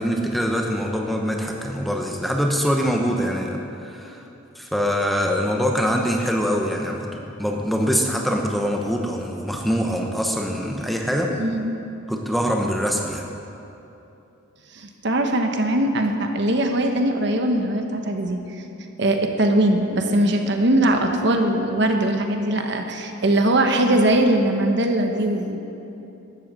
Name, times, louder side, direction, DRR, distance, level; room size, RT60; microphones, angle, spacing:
voice 1, 0.0-4.2 4.6-11.3 12.1-13.2, equal, ahead, 1 dB, 0.9 m, -24 dB
voice 2, 11.4-11.7 14.7-18.4 19.0-25.6, right 1 dB, 60° right, 4 dB, 1.1 m, -21 dB
13.0 x 7.9 x 7.5 m, 2.9 s
head